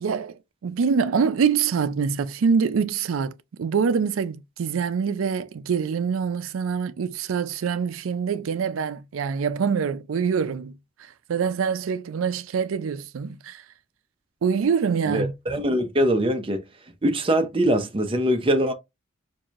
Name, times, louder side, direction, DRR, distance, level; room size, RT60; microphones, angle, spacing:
voice 1, 0.0-10.7 11.0-13.6 14.4-15.3, right 6 dB, 80° right, 0.4 m, -25 dB
voice 2, 15.1-16.6 17.0-18.7, right 1 dB, 25° right, 0.6 m, -22 dB
4.7 x 2.6 x 2.4 m
head